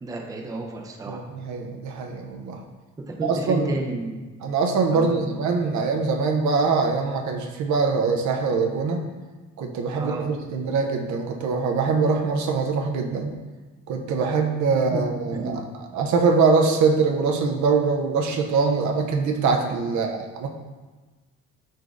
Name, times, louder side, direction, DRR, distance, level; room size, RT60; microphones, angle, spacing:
voice 1, 0.0-1.2 3.1-4.2 4.9-5.4 9.9-10.2 14.9-15.7 19.9-20.0, right 2 dB, 10° right, 2 dB, 0.4 m, -31 dB
voice 2, 1.1-2.6 3.2-3.8 4.4-9.1 9.6-13.3 13.9-15.6 15.9-20.5, right 4 dB, 70° right, 3 dB, 0.5 m, -23 dB
4.0 x 3.2 x 2.4 m, 1.3 s
cardioid pair, 90°, 30 cm